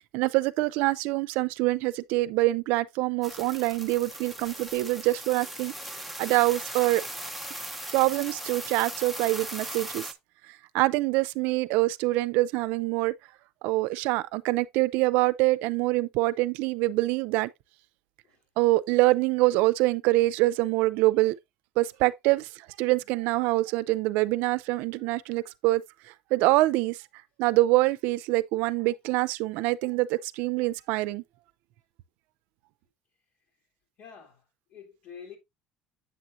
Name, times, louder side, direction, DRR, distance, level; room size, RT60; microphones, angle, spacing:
voice 1, 0.0-5.7 6.2-7.0 7.9-10.0 10.7-13.1 13.6-17.5 18.6-21.3 21.8-22.5 22.8-25.8 26.3-27.0 27.4-31.2, right 19 dB, 80° right, 0.4 m, -25 dB
sound 1, 3.2-10.1, right 1 dB, ahead, 0.8 m, -39 dB
voice 2, 34.0-34.4 34.7-35.4, left 7 dB, 65° left, 3.1 m, -48 dB
8.1 x 6.2 x 2.6 m
cardioid pair, 105°, 3 cm